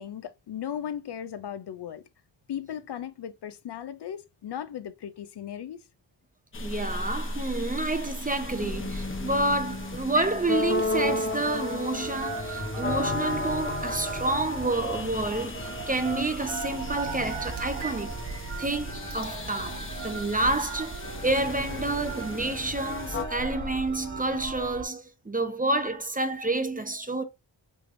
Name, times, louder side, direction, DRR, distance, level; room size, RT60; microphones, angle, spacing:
voice 1, 0.0-2.0 2.5-5.9, left 9 dB, 60° left, 0.5 m, -37 dB
sound 1, 6.5-23.2, left 2 dB, 25° left, 0.9 m, -34 dB
voice 2, 6.6-18.1 18.6-27.2, right 2 dB, 20° right, 0.6 m, -29 dB
Telephone, 9.7-9.8 10.0-10.4 10.6-11.9 12.2-13.2 14.3-14.6 14.8-15.5 16.0-18.0 18.4-18.5 19.1-19.2, right 5 dB, 60° right, 0.8 m, -39 dB
sound 2, 11.9-24.8, right 4 dB, 35° right, 1.5 m, -38 dB
3.4 x 3.2 x 2.5 m
cardioid pair, 50°, 47 cm